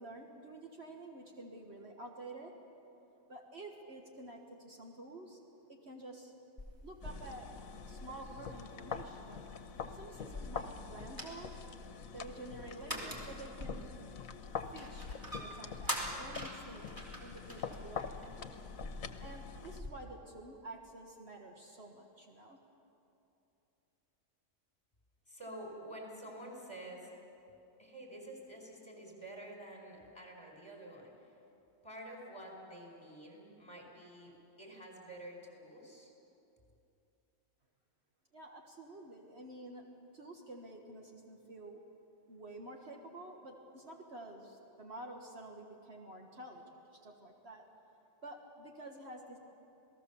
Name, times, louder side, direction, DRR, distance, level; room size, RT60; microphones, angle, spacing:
voice 1, 0.0-2.5 3.3-5.4 5.7-6.3 6.8-7.5 7.9-9.4 9.9-11.5 12.1-13.9 14.7-18.3 19.2-22.6 38.3-39.8 40.1-41.8 42.3-47.7 48.2-49.4, right 2 dB, 50° right, 1 dB, 1.8 m, -50 dB
sound 1, 6.6-19.9, equal, 15° right, 2.8 m, -46 dB
sound 2, 7.0-19.8, left 6 dB, 85° left, 1.4 m, -45 dB
voice 2, 25.3-27.1 27.8-31.4 31.8-36.1, right 1 dB, 20° left, 0 dB, 4.5 m, -49 dB
28.0 x 18.5 x 7.0 m, 2.8 s
omnidirectional pair, 1.4 m